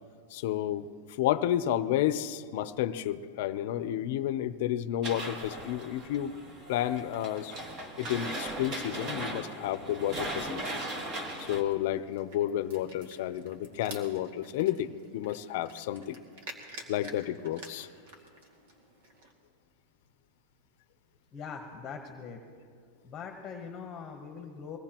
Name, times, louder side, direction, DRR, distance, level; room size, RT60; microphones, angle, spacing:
voice 1, 0.3-0.9 1.2-6.3 6.7-7.5 8.0-10.8 11.4-16.2 16.9-17.9, left 12 dB, 55° left, 13 dB, 0.6 m, -31 dB
sound 1, 5.0-11.6, right 1 dB, 30° right, 1.6 m, -38 dB
sound 2, 10.2-19.3, right 2 dB, 70° right, 2.3 m, -51 dB
voice 2, 21.3-22.4 23.0-24.8, left 6 dB, 20° left, 3 dB, 1.1 m, -42 dB
23.0 x 18.0 x 3.0 m, 2.2 s
supercardioid pair, 160°, 0 cm